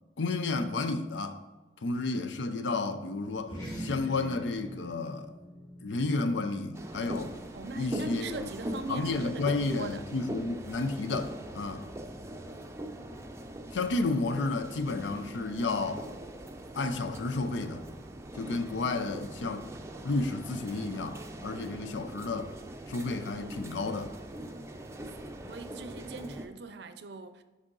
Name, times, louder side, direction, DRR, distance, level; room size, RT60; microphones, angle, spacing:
voice 1, 0.2-1.4 1.8-5.3 5.8-7.4 7.7-8.5 8.9-11.9 13.7-16.1 16.7-17.8 18.3-19.7 20.0-22.6 22.9-24.1, left 3 dB, 80° left, 0.5 m, -32 dB
sound 1, 3.4-8.2, equal, 20° left, 1.6 m, -44 dB
sound 2, 6.7-26.5, right 1 dB, 15° right, 0.5 m, -42 dB
voice 2, 7.5-10.0 25.5-27.4, right 3 dB, 65° right, 0.5 m, -40 dB
6.4 x 4.9 x 3.8 m
head